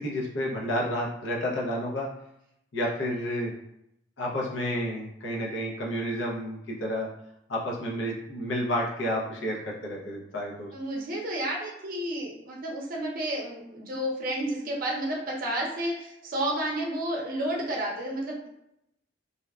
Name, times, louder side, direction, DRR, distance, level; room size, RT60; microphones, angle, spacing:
voice 1, 0.0-2.1 2.7-3.5 4.2-7.1 7.5-10.7, equal, 80° left, -3 dB, 0.6 m, -30 dB
voice 2, 10.7-18.5, right 1 dB, 50° right, -2 dB, 0.6 m, -31 dB
2.7 x 2.2 x 2.2 m, 0.81 s
head